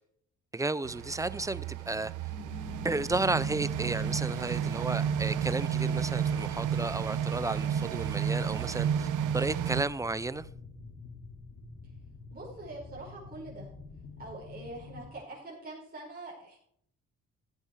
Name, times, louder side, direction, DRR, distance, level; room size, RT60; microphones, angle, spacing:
voice 1, 0.5-2.1 2.8-9.1 9.3-10.5, right 2 dB, 10° right, 0.5 m, -33 dB
sound 1, 0.8-9.8, right 8 dB, 80° right, 1.0 m, -32 dB
sound 2, 2.3-15.1, left 3 dB, 70° left, 3.0 m, -46 dB
voice 2, 12.3-13.7 14.2-16.6, right 2 dB, 30° right, 5.1 m, -44 dB
15.0 x 8.7 x 4.7 m
cardioid pair, 90°, 30 cm